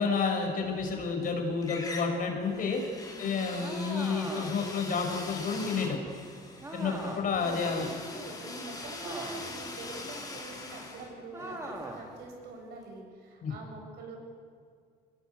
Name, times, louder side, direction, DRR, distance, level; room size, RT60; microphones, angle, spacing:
voice 1, 0.0-2.8 3.2-6.0 6.7-7.9 13.4-13.5, left 5 dB, 55° left, 3 dB, 5.8 m, -30 dB
sound 1, 0.7-1.3 1.6-12.5, left 3 dB, 25° left, 5.0 m, -43 dB
voice 2, 3.1-3.4 7.3-14.2, right 3 dB, 75° right, 1 dB, 7.8 m, -45 dB
sound 2, 3.6-4.8 6.6-7.4 9.0-9.7 11.3-12.1, right 1 dB, 15° right, 3.4 m, -41 dB
25.0 x 19.0 x 8.3 m, 2.1 s
cardioid pair, 110°, 17 cm